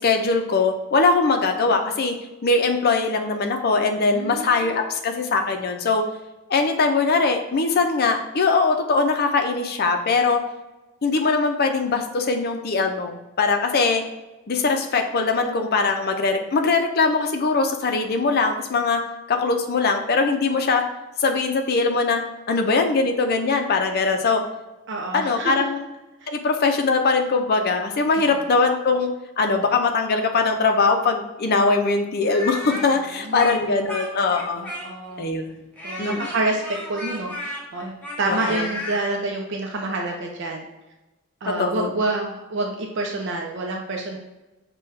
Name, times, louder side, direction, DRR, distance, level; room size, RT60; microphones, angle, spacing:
voice 1, 0.0-2.1 2.4-6.0 6.5-10.4 11.0-14.0 14.5-19.0 19.3-20.8 21.2-22.2 22.5-24.4 25.1-25.8 26.3-29.1 29.4-34.7 35.2-35.7 36.0-36.3 38.3-38.7 41.6-41.9, left 4 dB, 50° left, 5 dB, 0.5 m, -21 dB
voice 2, 4.0-4.9 24.9-25.7 26.2-26.3 28.2-28.3 33.2-33.6 34.6-35.3 35.8-36.6 36.9-40.6 41.4-44.2, right 2 dB, 60° right, 1 dB, 0.5 m, -28 dB
Speech, 32.2-35.1 35.8-39.0, left 1 dB, 10° left, 0.8 m, -33 dB
6.1 x 2.3 x 3.2 m, 1.0 s
head